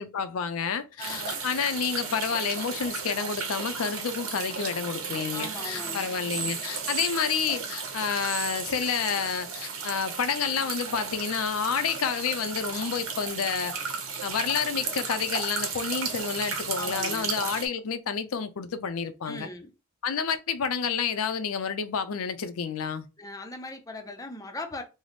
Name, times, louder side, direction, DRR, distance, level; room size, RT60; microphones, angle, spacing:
voice 1, 0.0-13.7 14.2-19.5 20.0-23.1, left 6 dB, 80° left, 0.5 m, -29 dB
voice 2, 1.0-1.4 5.3-6.1 16.8-17.3 19.2-19.7 23.2-24.8, left 2 dB, 15° left, 0.5 m, -39 dB
sound 1, 1.0-17.7, right 5 dB, 90° right, 0.8 m, -34 dB
3.1 x 2.0 x 4.0 m
head